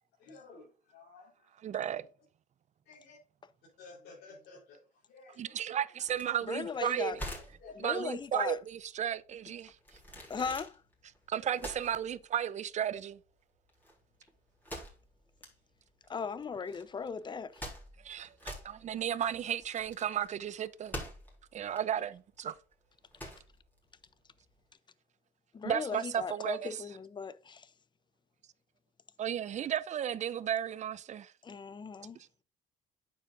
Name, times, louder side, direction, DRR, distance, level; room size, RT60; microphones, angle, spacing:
voice 1, 0.2-1.5 2.9-3.2 3.8-4.8 5.1-5.9 7.6-7.8, left 3 dB, 80° left, 4.0 m, -53 dB
voice 2, 1.6-2.1 5.4-7.1 7.8-9.8 11.3-13.2 18.0-21.0 21.5-22.6 25.6-26.8 29.2-31.3 32.2-32.3, right 9 dB, 45° right, 0.7 m, -34 dB
sound 1, 6.1-24.6, equal, 10° left, 4.0 m, -47 dB
voice 3, 6.5-7.2 7.8-8.6 10.3-10.8 16.1-17.6 25.5-27.7 31.4-32.2, left 5 dB, 25° left, 0.7 m, -38 dB
9.1 x 7.4 x 2.6 m
cardioid pair, 110°, 17 cm